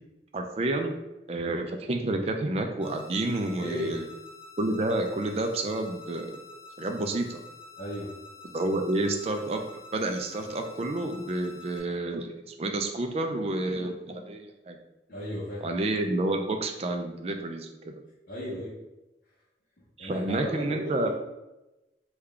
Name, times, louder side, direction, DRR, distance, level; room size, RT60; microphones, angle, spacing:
voice 1, 0.3-1.0 1.3-4.1 4.6-6.4 6.8-7.4 8.4-9.6 9.9-14.8 15.6-17.9 20.0-21.1, right 2 dB, 35° right, 4 dB, 0.3 m, -29 dB
sound 1, 2.8-11.8, left 3 dB, 20° left, 1.4 m, -48 dB
voice 2, 3.6-4.0 7.8-8.1 15.1-15.7 18.3-18.8 19.8-21.1, left 1 dB, 50° left, -9 dB, 0.7 m, -35 dB
3.6 x 2.3 x 3.2 m, 1.0 s
head